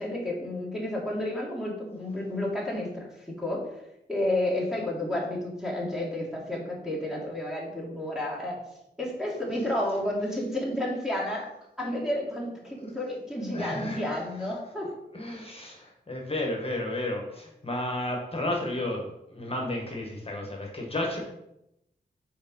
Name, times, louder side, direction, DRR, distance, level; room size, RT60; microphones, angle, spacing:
voice 1, 0.0-3.6 4.1-8.6 9.0-11.5 11.8-14.9, left 1 dB, 5° right, -4 dB, 2.8 m, -31 dB
voice 2, 13.3-14.1 15.1-21.2, left 1 dB, 30° left, 0 dB, 1.6 m, -32 dB
5.3 x 4.6 x 5.5 m, 0.83 s
cardioid pair, 70°, 19 cm